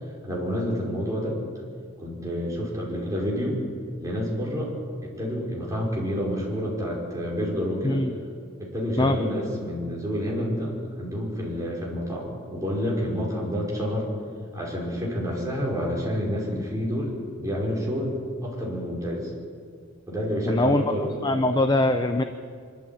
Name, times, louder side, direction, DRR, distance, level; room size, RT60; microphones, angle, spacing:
voice 1, 0.2-1.4 2.0-3.6 4.0-4.7 5.0-8.0 8.6-10.7 11.0-14.1 14.5-18.1 18.4-19.3 20.1-21.5, equal, 15° right, -4 dB, 5.2 m, -29 dB
voice 2, 20.5-22.2, left 2 dB, 20° left, 8 dB, 0.6 m, -22 dB
23.5 x 13.0 x 8.9 m, 2.2 s
head